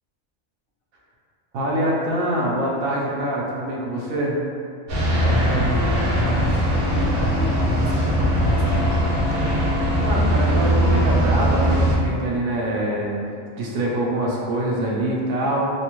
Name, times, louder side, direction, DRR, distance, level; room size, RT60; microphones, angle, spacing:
voice 1, 1.5-4.3 10.0-13.2 13.6-15.7, right 1 dB, 85° right, -4 dB, 1.1 m, -24 dB
sound 1, 4.9-12.0, equal, 55° right, 0.8 m, -20 dB
voice 2, 5.1-9.0 9.3-9.4, equal, 85° left, -4 dB, 1.1 m, -29 dB
3.3 x 2.1 x 3.0 m, 2.4 s
omnidirectional pair, 1.4 m